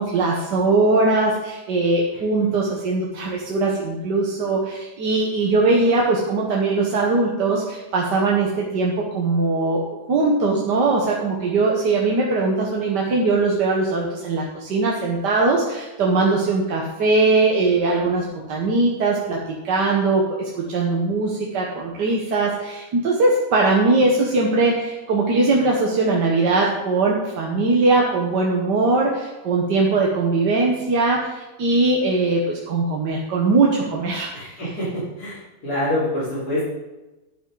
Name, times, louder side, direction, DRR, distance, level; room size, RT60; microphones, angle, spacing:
voice 1, 0.0-19.4 19.6-34.4, right 3 dB, 85° right, -2 dB, 2.0 m, -20 dB
voice 2, 34.3-36.6, left 1 dB, 65° left, -13 dB, 5.0 m, -26 dB
11.5 x 10.0 x 4.0 m, 1.1 s
omnidirectional pair, 1.8 m